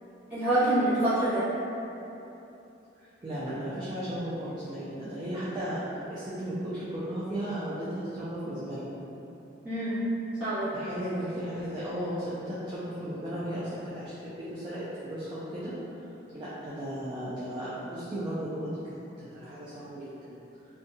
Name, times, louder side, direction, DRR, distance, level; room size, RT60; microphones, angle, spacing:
voice 1, 0.3-1.5 5.0-5.1 9.6-10.0 10.4-10.7, right 1 dB, 10° right, -17 dB, 1.2 m, -26 dB
voice 2, 3.0-8.8 10.7-15.7 16.3-18.8 19.2-20.4, equal, 25° right, -10 dB, 0.3 m, -35 dB
2.6 x 2.3 x 2.6 m, 2.9 s
head